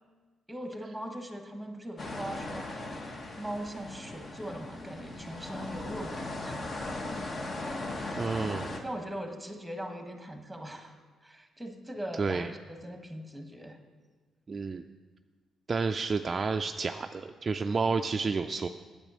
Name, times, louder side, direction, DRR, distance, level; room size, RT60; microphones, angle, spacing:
voice 1, 0.5-2.6 2.9-6.8 7.9-8.5 8.8-11.0 11.2-13.8, right 1 dB, ahead, 5 dB, 1.4 m, -40 dB
sound 1, 2.0-8.8, left 2 dB, 40° left, 1.2 m, -38 dB
voice 2, 8.2-8.8 12.1-12.5 14.5-14.8 15.7-18.7, right 4 dB, 35° right, 6 dB, 0.3 m, -30 dB
8.9 x 8.6 x 6.3 m, 1.4 s
cardioid pair, 90°, 0 cm